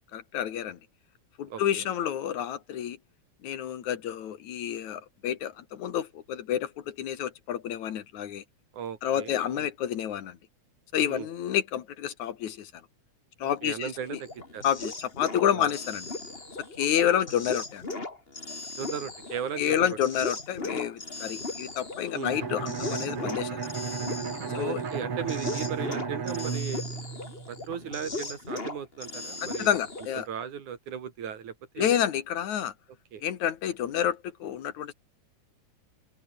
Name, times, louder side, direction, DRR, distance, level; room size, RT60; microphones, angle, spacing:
voice 1, 0.1-0.8 1.4-3.0 3.4-8.4 9.0-10.4 10.9-12.7 13.4-14.2 14.6-16.1 16.8-17.9 19.6-23.7 24.5-24.8 29.4-30.3 31.8-32.7 33.2-34.9, left 10 dB, 75° left, 3.1 m, -29 dB
voice 2, 1.5-1.9 8.7-9.7 11.1-11.3 13.6-14.6 15.5-15.7 18.8-20.0 22.1-22.4 24.5-26.9 27.5-29.8 30.2-31.9 33.1-33.2, right 8 dB, 90° right, 4.0 m, -37 dB
sound 1, 14.0-30.2, left 2 dB, 20° left, 3.0 m, -38 dB
Bowed string instrument, 22.2-27.9, right 6 dB, 50° right, 3.7 m, -34 dB
open air
omnidirectional pair, 3.4 m